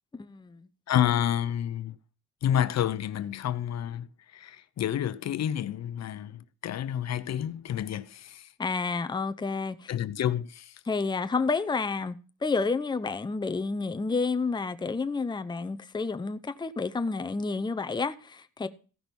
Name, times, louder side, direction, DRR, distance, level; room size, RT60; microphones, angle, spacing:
voice 1, 0.1-0.6 8.6-9.9 10.9-12.2 12.4-18.7, left 4 dB, 15° left, 0.8 m, -30 dB
voice 2, 0.9-2.0 2.4-8.5 9.9-10.8, left 10 dB, 60° left, 0.8 m, -29 dB
15.5 x 5.9 x 5.3 m
cardioid pair, 90°, 30 cm